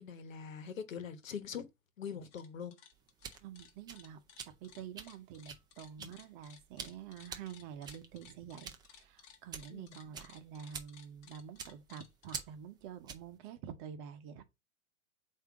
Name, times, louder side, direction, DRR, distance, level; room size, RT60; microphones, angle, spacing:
voice 1, 0.0-1.7 2.0-2.7 6.0-6.1 9.7-10.0, left 7 dB, 75° left, 1.2 m, -43 dB
sound 1, 2.1-2.5 2.7-12.4, left 8 dB, 35° left, 1.4 m, -58 dB
sound 2, 2.9-13.4, right 6 dB, 10° right, 0.5 m, -49 dB
voice 2, 3.4-14.4, right 8 dB, 35° right, 1.0 m, -48 dB
8.1 x 2.8 x 4.8 m
hypercardioid pair, 115°, 40 cm